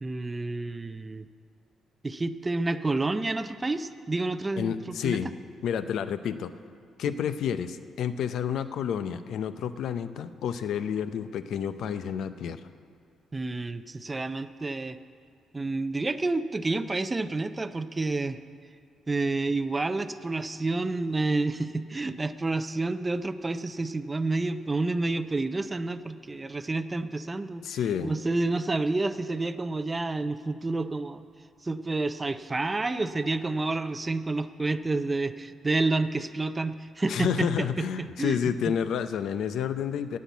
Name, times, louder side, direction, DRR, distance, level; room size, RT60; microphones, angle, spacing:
voice 1, 0.0-1.2 2.0-5.2 13.3-15.0 15.5-18.4 19.1-31.2 31.6-38.4 38.7-38.8, right 2 dB, 20° right, 11 dB, 0.4 m, -29 dB
voice 2, 4.6-5.3 5.6-6.5 7.0-12.6 27.6-28.1 37.1-40.2, left 8 dB, 75° left, 11 dB, 0.5 m, -30 dB
10.0 x 8.6 x 8.2 m, 2.2 s
cardioid pair, 90°, 0 cm